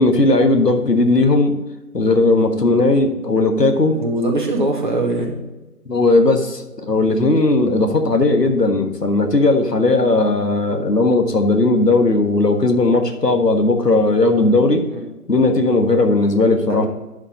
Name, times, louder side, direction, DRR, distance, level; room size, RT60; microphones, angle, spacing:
voice 1, 0.0-1.6 1.9-3.9 5.9-14.8 15.3-16.9, left 2 dB, 85° left, 5 dB, 1.5 m, -16 dB
voice 2, 3.9-5.4 14.9-15.0 16.7-16.9, right 2 dB, 30° right, 0 dB, 1.4 m, -22 dB
11.0 x 5.2 x 4.0 m, 1.1 s
figure-of-eight pair, 155°, 47 cm